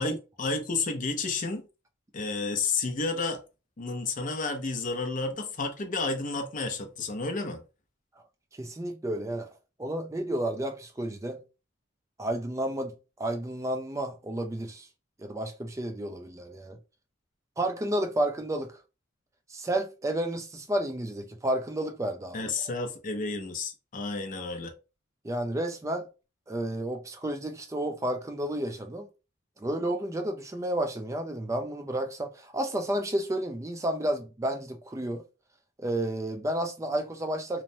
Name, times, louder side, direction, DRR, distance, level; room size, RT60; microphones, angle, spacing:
voice 1, 0.0-1.6 2.1-3.4 3.8-7.6 22.3-24.7, left 3 dB, 40° left, 0.5 m, -31 dB
voice 2, 8.6-9.5 9.8-11.4 12.2-12.9 13.2-14.9 15.2-16.8 17.6-18.7 19.5-22.5 25.2-26.1 26.5-29.1 29.6-35.2 35.8-37.6, right 1 dB, 15° right, 0.4 m, -31 dB
3.0 x 2.1 x 2.6 m
head